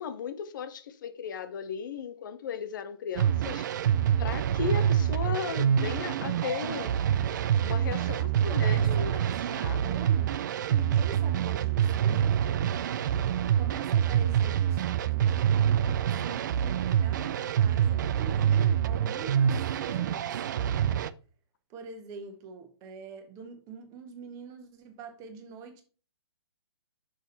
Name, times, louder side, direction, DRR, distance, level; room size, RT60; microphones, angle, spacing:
voice 1, 0.0-3.8 4.2-6.9 7.6-9.2 9.5-10.0, left 7 dB, 50° left, 0.8 m, -36 dB
sound 1, 3.2-21.1, right 9 dB, 45° right, 0.4 m, -26 dB
voice 2, 7.7-8.2 8.5-12.8 13.5-20.3 21.7-25.8, right 5 dB, 25° right, 1.4 m, -45 dB
6.3 x 5.0 x 4.0 m
figure-of-eight pair, 130°, 14 cm